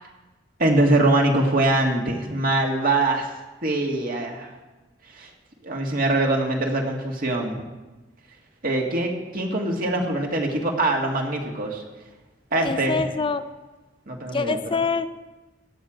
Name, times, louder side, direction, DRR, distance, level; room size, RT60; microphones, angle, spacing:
voice 1, 0.6-3.3 3.6-4.5 5.1-5.3 5.6-7.6 8.6-11.8 12.5-13.0 14.1-14.8, right 2 dB, 50° right, 1 dB, 1.9 m, -23 dB
voice 2, 12.7-13.4 14.3-15.1, left 4 dB, 25° left, 11 dB, 0.4 m, -25 dB
16.0 x 9.0 x 5.1 m, 1.2 s
head